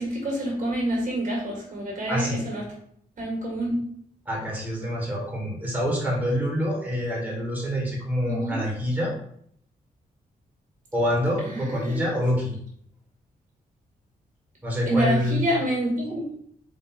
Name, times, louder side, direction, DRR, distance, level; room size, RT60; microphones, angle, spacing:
voice 1, 0.0-2.6 3.2-3.8 8.2-8.6 11.4-12.0 14.9-16.2, right 1 dB, 60° right, -2 dB, 1.9 m, -27 dB
voice 2, 2.1-2.5 4.2-9.1 10.9-12.6 14.6-15.4, equal, 10° right, -4 dB, 1.6 m, -26 dB
4.0 x 3.0 x 4.3 m, 0.66 s
cardioid pair, 125°, 16 cm